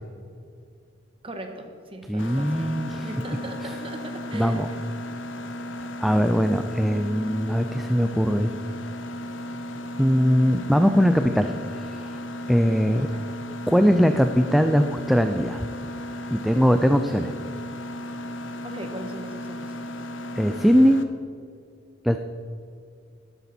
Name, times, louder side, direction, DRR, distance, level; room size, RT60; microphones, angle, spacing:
voice 1, 1.2-2.7 3.0-4.6 13.0-13.2 18.6-19.8, right 1 dB, 30° right, 4 dB, 1.5 m, -38 dB
voice 2, 2.1-3.1 3.6-3.7 4.3-4.7 6.0-8.5 10.0-12.1 12.5-13.1 13.7-15.6 16.3-17.3 20.4-21.1 22.0-22.2, equal, ahead, 7 dB, 0.4 m, -21 dB
Mechanisms, 2.2-21.0, left 1 dB, 70° left, 1.0 m, -35 dB
12.5 x 12.5 x 4.3 m, 2.4 s
head